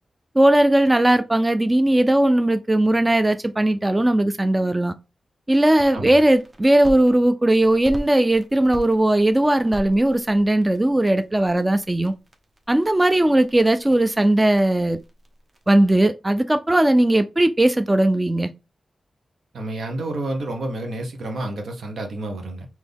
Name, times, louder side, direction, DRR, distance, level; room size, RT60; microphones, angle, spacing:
voice 1, 0.4-4.9 5.5-12.1 12.7-15.0 15.7-18.5, right 1 dB, 15° right, 0.3 m, -18 dB
sound 1, 5.5-7.1 7.6-15.7, right 1 dB, 35° right, 0.9 m, -42 dB
voice 2, 19.5-22.7, right 2 dB, 85° right, 1.2 m, -29 dB
4.1 x 2.9 x 3.4 m
wide cardioid pair, 120°, 0 cm